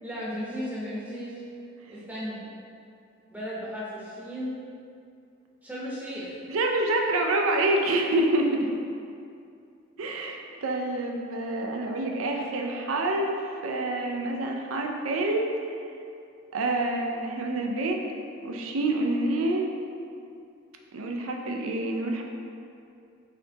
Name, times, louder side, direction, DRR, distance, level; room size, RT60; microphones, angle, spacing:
voice 1, 0.0-1.4 1.9-2.4 3.3-4.7 5.6-6.4, equal, 10° right, -8 dB, 0.8 m, -35 dB
voice 2, 6.5-8.7 10.0-13.3 13.6-15.7 16.5-18.0 18.4-19.7 20.9-22.2, right 2 dB, 80° right, 2 dB, 0.5 m, -27 dB
4.2 x 3.8 x 2.8 m, 2.5 s
head